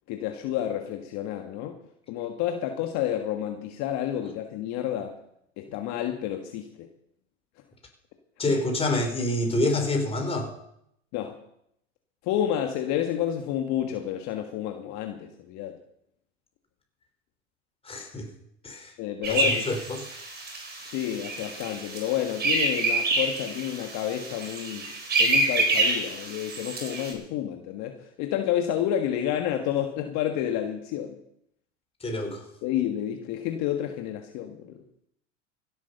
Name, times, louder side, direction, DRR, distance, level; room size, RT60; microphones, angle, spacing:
voice 1, 0.1-1.8 2.1-5.2 5.6-6.9 8.4-8.6 11.1-11.4 12.2-15.8 19.0-19.7 20.8-24.9 25.2-31.2 32.6-34.8, left 10 dB, 50° left, 5 dB, 1.6 m, -30 dB
voice 2, 8.4-10.5 17.8-18.3 18.6-18.9 19.3-20.0 32.0-32.5, left 1 dB, 15° left, 3 dB, 4.0 m, -27 dB
sound 1, 19.2-27.1, right 2 dB, 25° right, 4.6 m, -27 dB
15.5 x 8.9 x 6.7 m, 0.75 s
hypercardioid pair, 110°, 37 cm